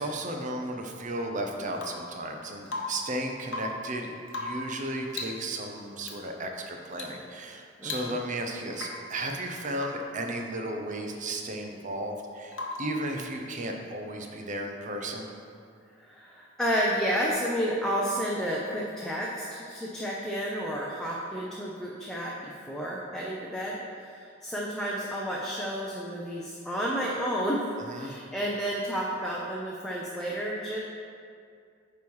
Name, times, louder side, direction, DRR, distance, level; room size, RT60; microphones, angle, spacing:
voice 1, 0.0-15.3 27.8-28.1, right 1 dB, 40° right, 3 dB, 0.7 m, -34 dB
Rain / Water tap faucet / Drip, 1.7-2.1 2.7-3.1 3.4-3.9 4.3-4.7 5.1-5.5 6.0-6.2 6.9-7.2 7.5-7.6 7.8-8.4 8.7-9.1 9.8-10.1 12.5-13.0 14.9-15.0, left 2 dB, 85° left, 0.9 m, -37 dB
voice 2, 7.8-8.2 15.9-30.8, equal, 5° left, -4 dB, 0.6 m, -31 dB
9.0 x 3.2 x 5.4 m, 2.3 s
head